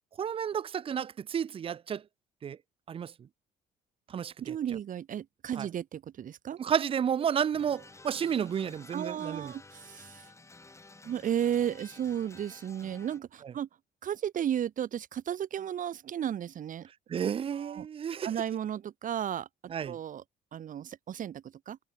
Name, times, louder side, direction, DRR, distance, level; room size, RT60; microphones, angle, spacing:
voice 1, 0.2-2.0 2.4-2.6 2.9-3.1 4.1-4.6 5.6-5.7 6.6-9.5 17.1-18.3 19.7-20.0, right 8 dB, 35° right, 0.5 m, -31 dB
voice 2, 4.4-6.6 8.9-10.3 11.0-13.7 14.0-16.9 17.5-17.9 18.2-20.2 20.5-21.8, right 10 dB, 50° right, 2.4 m, -34 dB
sound 1, 7.5-13.2, left 3 dB, 15° left, 7.1 m, -53 dB
cardioid pair, 110°, 17 cm